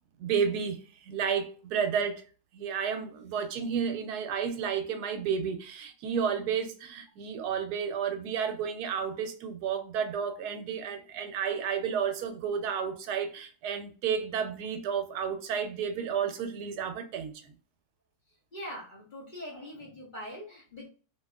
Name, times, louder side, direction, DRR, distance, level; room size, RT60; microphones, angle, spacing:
voice 1, 0.2-2.2 2.5-17.3, right 7 dB, 80° right, 1.1 m, -31 dB
voice 2, 18.5-20.9, equal, 35° left, 0.9 m, -42 dB
2.9 x 2.6 x 2.3 m
omnidirectional pair, 1.7 m